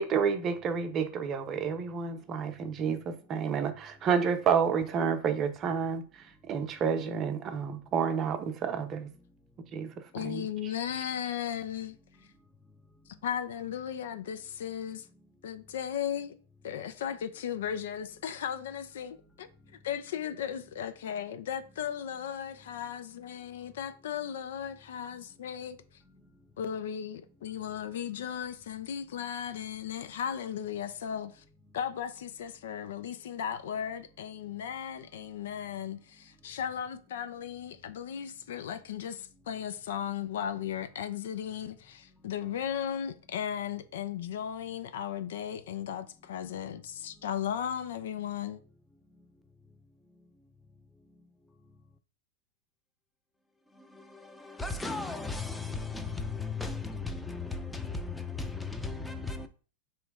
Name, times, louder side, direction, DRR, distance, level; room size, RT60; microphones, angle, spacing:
voice 1, 0.0-9.1 9.7-10.5, right 6 dB, 35° right, 0.6 m, -30 dB
voice 2, 10.1-12.0 13.2-15.0 15.4-16.3 16.6-19.5 19.8-25.8 26.6-31.4 31.7-48.6, left 9 dB, 70° left, 0.4 m, -36 dB
voice 3, 53.9-59.5, left 4 dB, 5° left, 0.6 m, -36 dB
3.1 x 3.0 x 4.7 m
hypercardioid pair, 100°, 0 cm